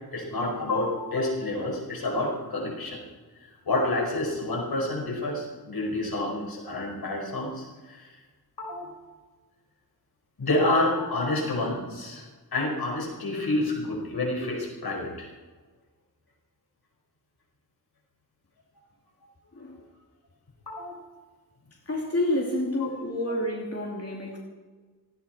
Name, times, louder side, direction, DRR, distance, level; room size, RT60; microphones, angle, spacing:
voice 1, 0.1-3.0 3.4-8.2 8.6-9.1 10.4-12.3 12.5-15.3 20.7-21.0 22.8-22.9 23.3-23.4, left 2 dB, 75° left, -1 dB, 5.2 m, -29 dB
voice 2, 21.9-24.4, left 1 dB, 40° left, -2 dB, 2.9 m, -29 dB
18.5 x 15.5 x 4.5 m, 1.4 s
wide cardioid pair, 110°, 37 cm